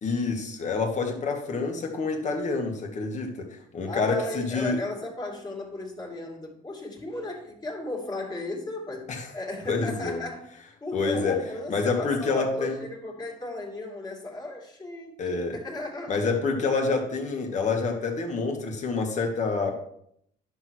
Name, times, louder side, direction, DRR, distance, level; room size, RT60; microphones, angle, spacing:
voice 1, 0.0-4.8 9.1-9.3 9.7-10.2 10.9-11.4 11.7-12.8 15.2-15.6 16.1-19.7, left 4 dB, 45° left, 2 dB, 2.2 m, -27 dB
voice 2, 3.8-10.5 10.8-16.3, left 2 dB, 25° left, -1 dB, 2.8 m, -35 dB
11.0 x 6.4 x 4.7 m, 0.70 s
cardioid pair, 110°, 17 cm